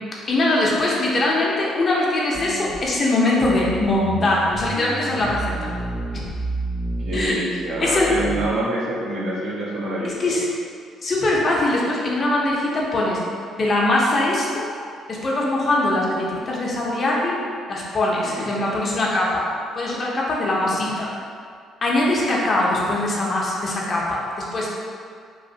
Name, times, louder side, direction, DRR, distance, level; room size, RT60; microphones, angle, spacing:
voice 1, 0.3-5.7 7.1-7.3 7.8-8.1 10.0-10.4 11.0-13.2 13.5-14.7 15.1-17.4 17.7-19.4 19.7-21.1 21.8-24.7, left 2 dB, 45° left, -4 dB, 0.7 m, -22 dB
sound 1, 2.3-3.0 3.4-8.5, right 2 dB, 5° right, 0.4 m, -31 dB
voice 2, 7.0-10.3 18.2-18.5 20.4-20.5, right 1 dB, 65° right, -5 dB, 0.7 m, -26 dB
3.1 x 2.4 x 2.7 m, 2.2 s
hypercardioid pair, 55°, 0 cm